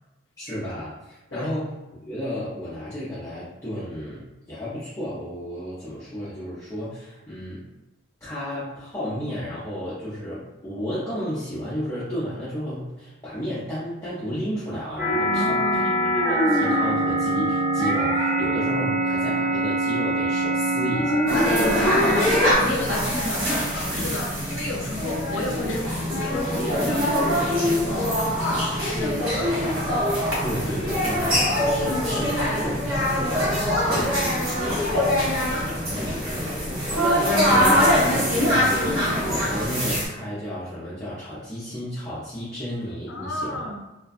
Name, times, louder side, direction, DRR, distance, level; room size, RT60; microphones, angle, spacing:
voice 1, 0.4-1.7 2.1-7.6 8.2-21.3 29.6-29.8 30.4-35.0 35.9-36.5 36.9-43.6, equal, 15° left, -12 dB, 0.5 m, -33 dB
sound 1, 15.0-22.5, right 1 dB, 5° right, 0.9 m, -23 dB
voice 2, 15.2-16.1 21.6-22.5 22.8-29.6 33.9-34.1 34.9-35.6 43.1-43.8, left 1 dB, 70° left, 1 dB, 0.5 m, -33 dB
sound 2, 21.3-40.1, equal, 90° right, 0.9 m, -23 dB
2.5 x 2.2 x 2.3 m, 1.0 s
head